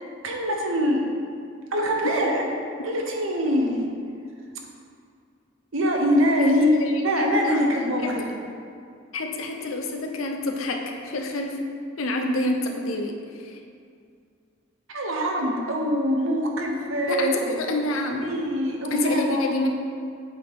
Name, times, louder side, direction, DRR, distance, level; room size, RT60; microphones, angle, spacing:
voice 1, 0.2-1.1 1.7-2.5 2.8-3.9 5.7-6.7 7.0-8.3 14.9-17.6 18.1-19.4, equal, 80° right, 1 dB, 0.9 m, -24 dB
voice 2, 6.4-7.6 8.0-8.1 9.1-11.6 12.0-13.2 13.4-13.6 17.1-18.4 18.9-19.7, left 2 dB, 90° left, 2 dB, 0.7 m, -28 dB
8.0 x 3.5 x 4.2 m, 2.3 s
head